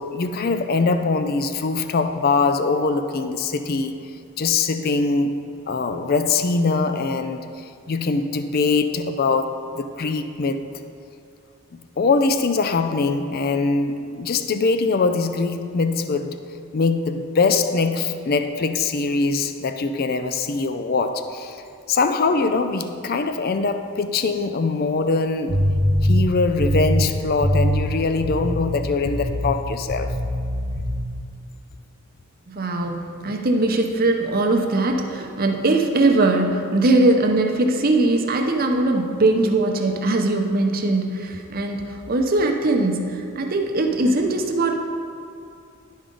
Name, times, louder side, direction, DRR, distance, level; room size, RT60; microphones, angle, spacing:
voice 1, 0.0-4.0 4.4-5.4 5.7-10.7 12.0-16.4 16.7-21.6 21.9-25.6 26.0-30.1, left 4 dB, 40° left, 8 dB, 0.4 m, -22 dB
sound 1, 25.5-27.9 28.2-28.7 29.0-29.6 29.9-31.0, equal, 85° right, 1.0 m, -22 dB
voice 2, 32.5-44.9, right 2 dB, 40° right, 4 dB, 0.6 m, -20 dB
11.0 x 5.2 x 3.8 m, 2.4 s
head